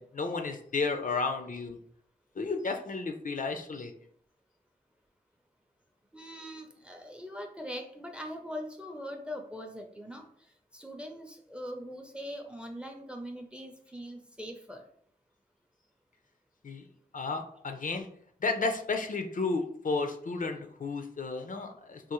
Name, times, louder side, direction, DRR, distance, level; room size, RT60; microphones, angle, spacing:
voice 1, 0.0-1.8 2.4-3.9 16.6-16.9 17.1-18.1 18.4-22.1, left 3 dB, 55° left, 5 dB, 0.4 m, -32 dB
voice 2, 6.1-10.3 10.7-14.9, equal, 5° right, 4 dB, 0.5 m, -41 dB
3.6 x 2.5 x 3.0 m, 0.64 s
wide cardioid pair, 85°, 17 cm